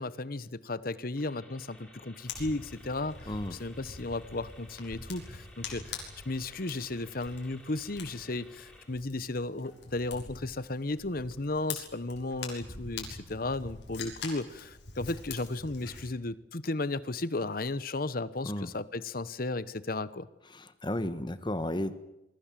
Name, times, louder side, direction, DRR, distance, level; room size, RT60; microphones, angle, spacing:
voice 1, 0.0-20.3, left 2 dB, 50° left, 16 dB, 1.0 m, -35 dB
sound 1, 1.2-8.8, left 1 dB, 5° left, 6.4 m, -56 dB
Fire, 2.3-16.0, left 5 dB, 70° left, 6.6 m, -45 dB
voice 2, 3.3-3.6 18.4-18.7 20.5-22.0, left 1 dB, 25° left, 12 dB, 1.3 m, -33 dB
28.0 x 22.5 x 7.6 m, 0.94 s
head